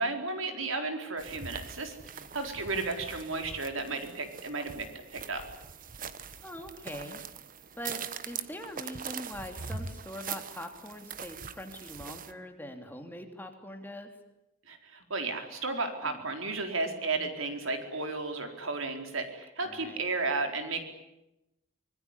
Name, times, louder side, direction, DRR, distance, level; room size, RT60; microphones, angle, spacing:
voice 1, 0.0-5.4 14.7-20.8, right 3 dB, 75° right, 5 dB, 4.3 m, -33 dB
sound 1, 1.2-12.3, right 6 dB, 40° right, 1.2 m, -42 dB
voice 2, 6.4-7.2 7.8-14.1 16.0-16.2 19.6-20.1, left 1 dB, 10° left, 4 dB, 3.1 m, -43 dB
25.5 x 21.0 x 9.9 m, 0.89 s
head